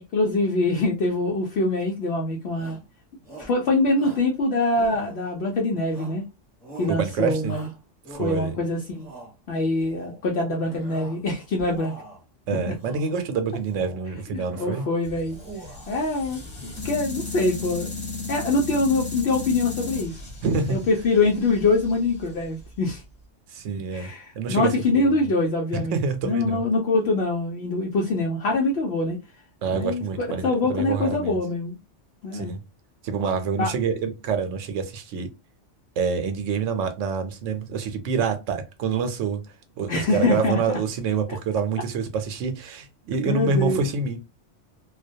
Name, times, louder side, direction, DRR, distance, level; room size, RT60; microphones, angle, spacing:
voice 1, 0.1-2.8 3.4-6.3 6.8-7.7 8.2-9.1 9.5-11.9 12.7-12.8 14.3-15.4 15.9-17.9 18.3-20.2 20.7-23.0 23.9-29.2 29.7-31.8 32.2-32.5 33.6-33.7 39.9-40.8 43.3-43.9, left 2 dB, 65° left, 0.8 m, -24 dB
Shout, 2.5-2.9 3.2-3.6 3.9-4.3 4.7-5.4 5.9-6.3 6.6-7.0 7.4-8.5 8.9-9.3 9.8-10.2 10.6-11.2 11.5-12.2 12.7-13.1 13.5-14.1 14.4-14.9 15.3-16.0, right 2 dB, 10° left, 1.0 m, -43 dB
voice 2, 6.9-7.6 8.1-8.5 12.5-14.9 20.4-20.8 23.5-24.1 24.4-25.1 25.7-26.6 29.6-31.4 32.3-32.6 33.0-35.3 36.0-39.4 39.8-44.2, right 5 dB, 85° right, 0.9 m, -27 dB
sound 1, 15.0-23.1, left 3 dB, 30° left, 1.0 m, -36 dB
2.3 x 2.2 x 2.6 m
omnidirectional pair, 1.2 m